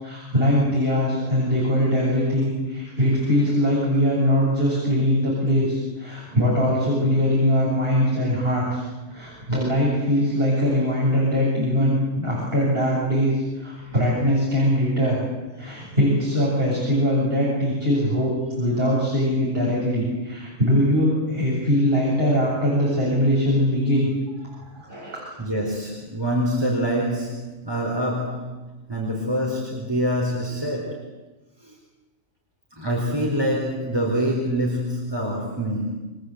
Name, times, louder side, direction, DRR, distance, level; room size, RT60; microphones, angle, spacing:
voice 1, 0.0-8.8 9.1-15.2 15.5-24.1 24.7-25.2, equal, 45° right, -4 dB, 8.0 m, -21 dB
voice 2, 24.5-24.8 25.1-31.1 31.6-31.8 32.7-35.9, equal, 15° right, -1 dB, 4.2 m, -26 dB
29.5 x 23.5 x 8.1 m, 1.1 s
omnidirectional pair, 1.4 m